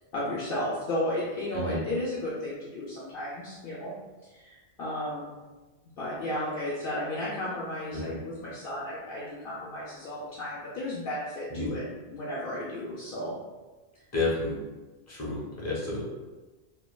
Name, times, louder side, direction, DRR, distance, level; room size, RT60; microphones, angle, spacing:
voice 1, 0.1-3.9 4.3-5.3 6.0-11.8 12.1-13.3, left 1 dB, 65° left, -7 dB, 0.7 m, -33 dB
voice 2, 7.9-8.2 11.5-11.8 14.1-14.6 15.1-16.0, left 2 dB, 20° left, -6 dB, 0.6 m, -31 dB
3.2 x 2.1 x 2.2 m, 1.2 s
omnidirectional pair, 1.1 m